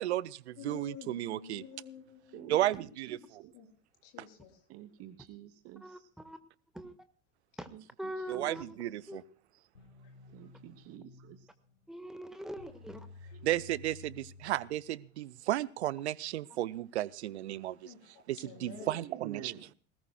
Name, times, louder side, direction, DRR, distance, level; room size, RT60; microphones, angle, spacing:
voice 1, 0.0-1.6 2.5-3.2 8.3-9.2 13.4-17.9 18.3-19.5, right 14 dB, 65° right, 0.7 m, -33 dB
voice 2, 0.6-2.7 3.5-3.7 4.0-4.6 17.8-18.0 18.4-19.0, left 7 dB, 50° left, 3.9 m, -49 dB
voice 3, 2.3-3.5 4.7-6.1 7.7-8.5 8.9-9.1 10.3-11.5 13.3-13.5 19.0-19.6, right 12 dB, 40° right, 1.0 m, -49 dB
voice 4, 8.0-9.2 11.9-13.1, equal, ahead, 1.5 m, -42 dB
sound 1, 9.7-15.3, left 3 dB, 80° left, 1.8 m, -54 dB
20.0 x 18.5 x 2.3 m
figure-of-eight pair, 75°, 36 cm